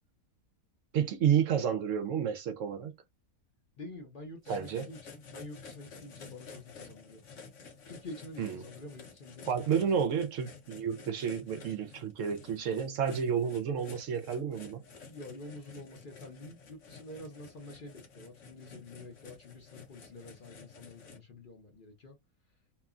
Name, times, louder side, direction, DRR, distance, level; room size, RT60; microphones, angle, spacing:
voice 1, 0.9-2.9 4.5-4.9 8.4-8.6 9.5-14.8, right 8 dB, 70° right, 0.9 m, -30 dB
voice 2, 3.8-7.2 7.9-9.5 15.0-22.2, left 2 dB, 45° left, 0.8 m, -48 dB
sound 1, 4.4-21.2, left 5 dB, 60° left, 1.1 m, -52 dB
3.0 x 2.2 x 2.3 m
omnidirectional pair, 1.5 m